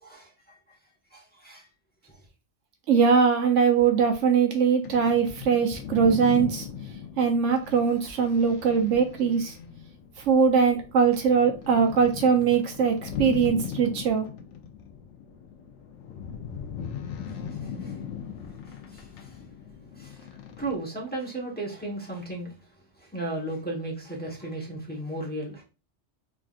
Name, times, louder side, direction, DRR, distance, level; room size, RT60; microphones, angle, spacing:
voice 1, 0.0-0.6 1.1-1.7 17.5-18.0 18.6-19.4 20.0-22.5 23.0-25.6, right 2 dB, 10° left, 1.0 m, -35 dB
voice 2, 2.9-6.7 7.2-9.5 10.2-14.3, right 6 dB, 80° right, 1.1 m, -21 dB
sound 1, 4.8-20.8, left 7 dB, 75° left, 0.9 m, -39 dB
3.6 x 3.5 x 2.4 m
omnidirectional pair, 1.2 m